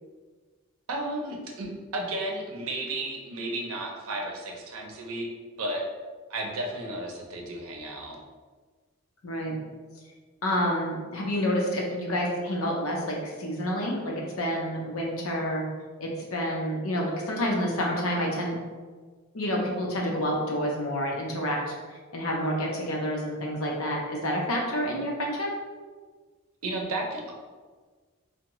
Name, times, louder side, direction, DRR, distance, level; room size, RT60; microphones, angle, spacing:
voice 1, 0.9-5.3 5.6-5.8 6.3-8.2 26.6-27.3, right 1 dB, 80° right, 0 dB, 0.6 m, -33 dB
voice 2, 9.2-9.6 10.4-15.6 16.0-18.6 19.3-21.6 22.1-25.5, equal, 80° left, -1 dB, 0.7 m, -28 dB
3.5 x 2.2 x 2.9 m, 1.4 s
head